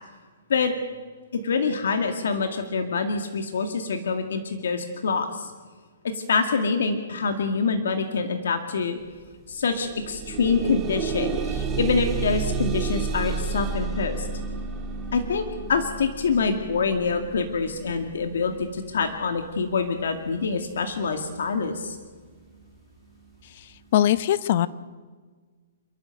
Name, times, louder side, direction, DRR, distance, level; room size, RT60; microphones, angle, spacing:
voice 1, 1.3-5.5 6.1-9.0 9.5-14.3 15.1-22.0, left 4 dB, 80° left, 5 dB, 2.1 m, -26 dB
sound 1, 9.0-9.2 9.5-20.5 21.3-21.4 21.9-22.0, right 4 dB, 15° right, 1.8 m, -32 dB
voice 2, 23.9-24.7, left 12 dB, 45° left, 16 dB, 0.8 m, -20 dB
29.0 x 11.5 x 7.9 m, 1.5 s
hypercardioid pair, 165°, 0 cm